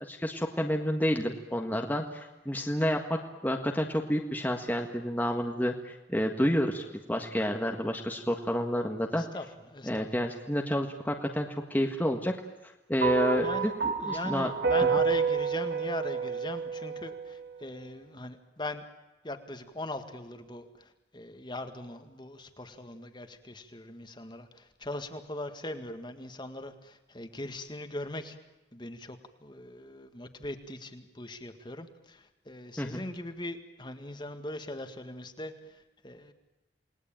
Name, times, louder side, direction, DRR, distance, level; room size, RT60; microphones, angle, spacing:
voice 1, 0.1-9.2 9.9-12.3 12.9-14.5 14.8-15.0 32.8-33.0, equal, 10° left, 2 dB, 1.6 m, -29 dB
voice 2, 9.2-10.1 13.4-13.7 14.0-18.8 19.2-28.4 28.7-36.3, left 1 dB, 25° left, 7 dB, 1.9 m, -40 dB
sound 1, 13.0-17.4, right 6 dB, 65° right, 2.9 m, -29 dB
29.0 x 20.0 x 8.9 m, 1.1 s
head